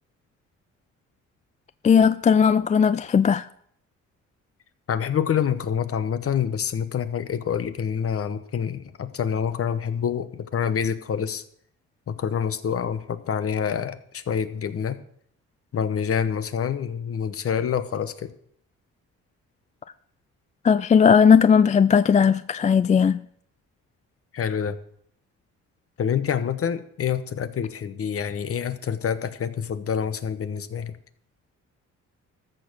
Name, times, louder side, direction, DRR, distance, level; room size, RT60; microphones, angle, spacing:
voice 1, 1.8-3.5 20.6-23.2, left 6 dB, 25° left, 0.3 m, -17 dB
voice 2, 4.9-11.4 12.1-15.0 15.7-18.3 24.3-24.8 26.0-31.0, left 7 dB, 50° left, 1.1 m, -27 dB
13.5 x 6.7 x 6.2 m
cardioid pair, 90°, 30 cm